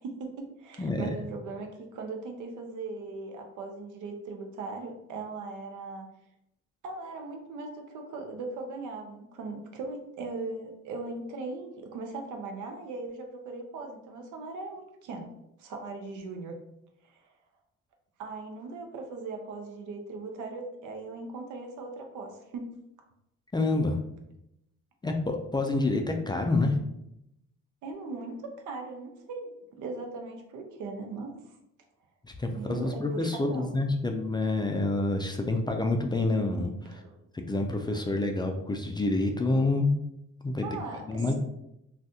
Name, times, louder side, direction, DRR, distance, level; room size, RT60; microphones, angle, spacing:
voice 1, 0.0-6.1 6.8-15.3 15.6-16.5 17.0-17.2 18.2-22.7 27.8-31.3 32.5-33.8 36.8-37.1 40.6-41.3, right 3 dB, 80° right, 3 dB, 0.7 m, -39 dB
voice 2, 0.8-1.1 23.5-24.0 25.0-26.8 32.4-37.0 37.3-39.9 40.4-40.6 41.0-41.3, left 2 dB, 15° left, 3 dB, 0.3 m, -27 dB
2.6 x 2.4 x 3.5 m, 0.82 s
cardioid pair, 90°, 30 cm